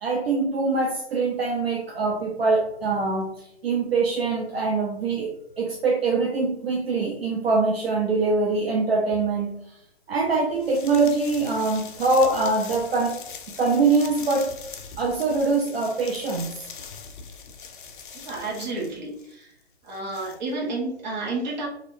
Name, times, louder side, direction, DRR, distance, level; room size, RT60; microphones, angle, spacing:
voice 1, 0.0-9.8 10.1-13.2 13.6-14.5 15.0-16.7, right 3 dB, 60° right, -1 dB, 0.6 m, -23 dB
sound 1, 7.8-7.9 9.1-9.3 10.3-19.3 19.6-20.4, left 6 dB, 50° left, 0.4 m, -42 dB
voice 2, 18.1-19.5 19.8-21.7, right 2 dB, 40° right, -2 dB, 0.9 m, -31 dB
3.4 x 2.5 x 2.6 m, 0.77 s
figure-of-eight pair, 130°, 34 cm